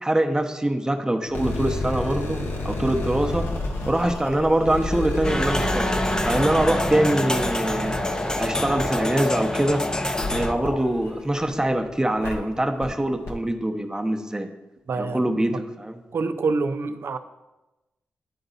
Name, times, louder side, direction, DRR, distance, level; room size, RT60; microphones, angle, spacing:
voice 1, 0.0-3.5 3.9-5.9 6.2-8.0 8.4-9.8 10.3-14.5 14.9-16.0, right 1 dB, 15° right, 5 dB, 0.9 m, -24 dB
sound 1, 1.3-11.7 12.2-12.3 12.8-12.9 13.2-13.3, left 1 dB, 70° left, 1.2 m, -31 dB
sound 2, 5.2-10.5, left 1 dB, 15° left, 0.6 m, -27 dB
sound 3, 5.5-10.8, left 2 dB, 50° left, 1.3 m, -31 dB
voice 2, 14.9-15.2 16.1-17.2, right 4 dB, 60° right, 10 dB, 0.5 m, -26 dB
10.0 x 3.9 x 4.0 m, 1.0 s
supercardioid pair, 40°, 5 cm